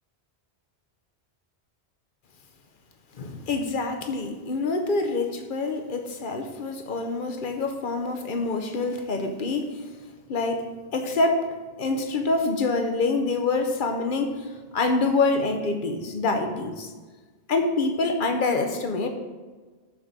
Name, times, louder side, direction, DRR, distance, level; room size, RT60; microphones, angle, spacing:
voice 1, 3.2-9.8 10.3-11.5 11.8-14.5 14.7-16.9 17.5-19.1, left 3 dB, 55° left, 5 dB, 0.8 m, -26 dB
7.1 x 3.8 x 6.5 m, 1.4 s
omnidirectional pair, 1.1 m